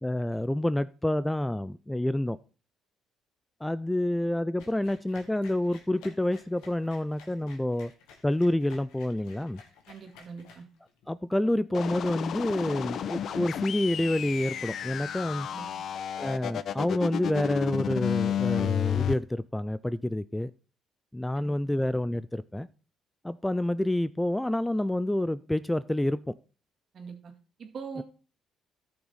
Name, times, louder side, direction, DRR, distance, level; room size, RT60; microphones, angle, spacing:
voice 1, 0.0-2.4 3.6-7.9 8.2-9.6 11.1-15.5 16.2-20.5 21.1-22.7 23.2-26.2, left 1 dB, 10° left, 0.4 m, -28 dB
sound 1, 4.6-11.1, left 5 dB, 85° left, 2.0 m, -54 dB
voice 2, 9.9-10.7 15.5-15.7 21.3-21.5 26.9-27.3 27.6-28.0, right 5 dB, 55° right, 2.1 m, -42 dB
sound 2, 11.7-19.1, left 9 dB, 60° left, 0.6 m, -31 dB
13.5 x 5.8 x 4.1 m
supercardioid pair, 75°, 0 cm